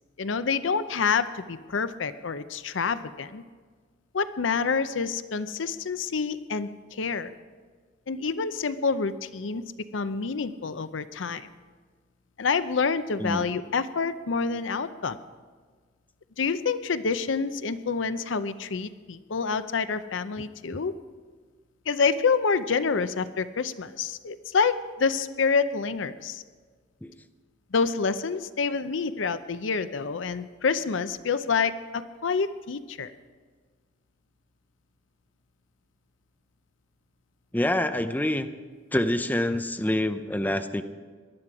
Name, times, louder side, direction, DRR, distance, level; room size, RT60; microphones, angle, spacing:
voice 1, 0.2-3.4 4.1-7.3 8.1-9.6 9.9-11.5 12.4-15.2 16.4-20.9 21.9-26.4 27.7-33.1, left 5 dB, 75° left, 13 dB, 0.6 m, -27 dB
voice 2, 37.5-38.5 38.9-40.8, left 1 dB, 10° left, 8 dB, 0.6 m, -26 dB
18.5 x 12.0 x 4.8 m, 1.5 s
head